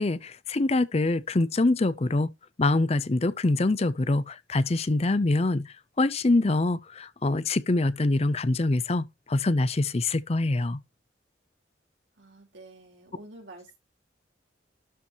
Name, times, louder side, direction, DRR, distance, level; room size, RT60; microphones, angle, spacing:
voice 1, 0.0-2.3 2.6-10.8, left 2 dB, 35° left, 0.5 m, -25 dB
voice 2, 12.2-13.8, right 2 dB, 85° right, 4.0 m, -48 dB
12.5 x 4.5 x 2.9 m
head